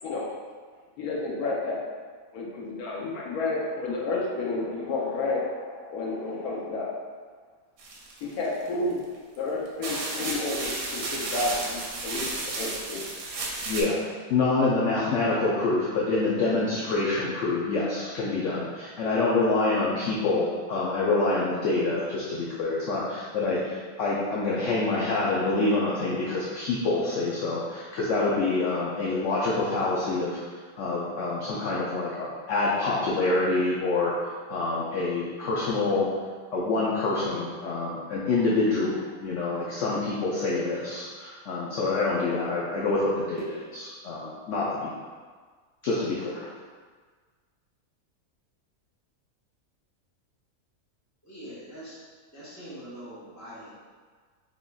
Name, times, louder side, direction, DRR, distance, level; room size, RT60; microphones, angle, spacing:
voice 1, 1.0-1.8 2.3-6.9 8.2-9.0 9.4-13.0, left 2 dB, 90° left, -3 dB, 1.2 m, -31 dB
sound 1, 7.8-8.7 9.4-9.5 9.8-13.8, right 3 dB, 75° right, 1.1 m, -33 dB
voice 2, 13.7-14.0 14.3-34.1 34.5-36.1 36.5-38.9 39.2-44.9 45.8-46.5, left 3 dB, 65° left, -6 dB, 0.8 m, -26 dB
voice 3, 51.2-52.0 52.3-53.7, equal, 15° left, -10 dB, 1.0 m, -43 dB
3.8 x 3.5 x 2.3 m, 1.5 s
omnidirectional pair, 1.5 m